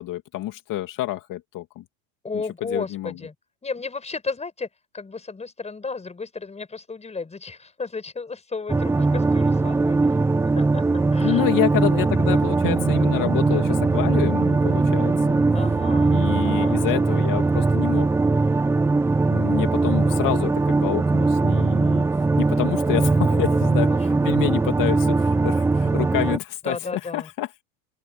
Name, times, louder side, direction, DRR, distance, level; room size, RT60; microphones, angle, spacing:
voice 1, 0.0-1.8 2.7-3.1 11.2-15.4 16.1-18.1 19.3-22.0 22.4-26.8 27.1-27.5, left 15 dB, 45° left, 2.5 m, -28 dB
voice 2, 2.2-3.4 3.6-4.7 4.9-10.2 10.5-10.8 11.1-11.4 13.4-13.8 15.5-17.6 19.8-20.1 23.3-24.5 26.6-27.3, left 4 dB, 15° left, 5.3 m, -34 dB
sound 1, 8.7-26.4, right 3 dB, 5° right, 0.4 m, -20 dB
sound 2, 12.6-21.1, right 23 dB, 60° right, 7.1 m, -37 dB
open air
supercardioid pair, 115°, 43 cm